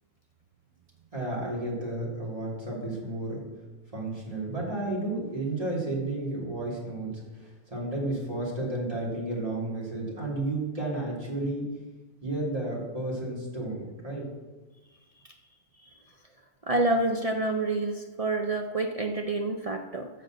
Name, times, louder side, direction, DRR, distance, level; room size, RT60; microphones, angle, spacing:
voice 1, 1.1-3.4 3.9-7.2 7.7-11.6 12.2-14.3, right 2 dB, 25° right, -4 dB, 2.8 m, -32 dB
voice 2, 16.7-20.1, right 2 dB, 65° right, 4 dB, 0.3 m, -28 dB
11.5 x 4.4 x 7.7 m, 1.2 s
omnidirectional pair, 1.6 m